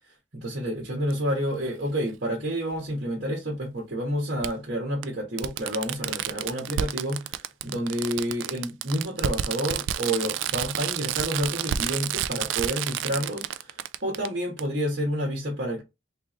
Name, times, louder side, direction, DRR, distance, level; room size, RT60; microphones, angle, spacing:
voice 1, 0.3-15.8, equal, 55° right, 1.4 m, -29 dB
Fireworks, 1.1-1.2 2.7-2.8 4.4-4.5 5.0-5.1 5.4-14.3 14.6-14.7, right 10 dB, 85° right, 0.3 m, -30 dB
3.3 x 3.3 x 3.1 m
head